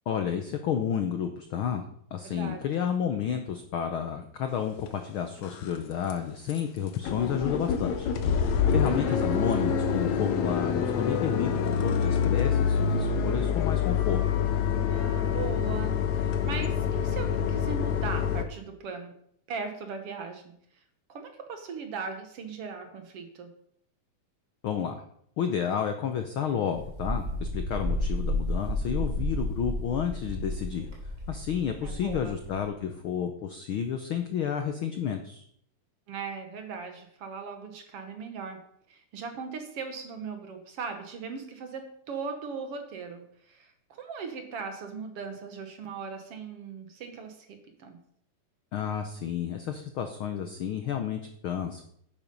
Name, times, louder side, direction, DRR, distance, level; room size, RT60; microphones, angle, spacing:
voice 1, 0.1-1.8 2.1-8.1 8.7-11.5 11.8-14.2 24.6-25.0 25.4-30.9 31.3-35.4 48.7-51.8, left 8 dB, 90° left, 6 dB, 1.1 m, -31 dB
voice 2, 2.2-2.6 8.9-9.3 14.7-19.1 19.5-20.5 21.1-23.5 31.8-32.4 36.1-38.6 38.9-48.0, right 5 dB, 55° right, 6 dB, 2.0 m, -39 dB
sound 1, 4.8-4.9 5.4-5.8 6.1-6.2 6.5-6.6 6.9-18.4, left 7 dB, 70° left, 2.2 m, -26 dB
Wind, 26.7-32.7, left 1 dB, 25° right, 3.3 m, -32 dB
10.5 x 9.0 x 5.4 m, 0.67 s
omnidirectional pair, 3.6 m